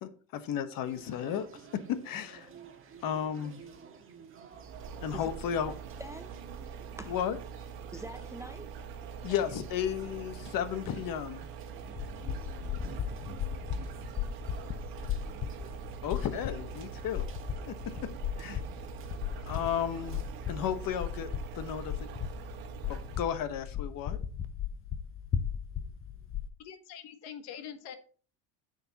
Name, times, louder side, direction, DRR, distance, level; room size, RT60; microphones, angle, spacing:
voice 1, 0.0-1.5 1.9-2.5 3.0-3.6 5.0-5.7 7.1-7.4 9.2-11.5 16.0-17.3 17.7-17.8 18.4-18.6 19.5-20.2 20.5-21.3 21.6-21.8 22.9-24.2, left 9 dB, 55° left, 1.1 m, -33 dB
sound 1, 0.8-20.5, right 6 dB, 30° right, 1.5 m, -53 dB
sound 2, 4.5-23.4, right 7 dB, 60° right, 1.5 m, -44 dB
voice 2, 6.0-7.1 7.9-8.7 9.3-9.4, right 1 dB, 10° right, 0.4 m, -45 dB
sound 3, 11.8-26.5, left 8 dB, 30° left, 0.9 m, -37 dB
voice 3, 26.6-28.0, left 8 dB, 70° left, 1.4 m, -44 dB
10.0 x 6.8 x 2.9 m
cardioid pair, 125°, 41 cm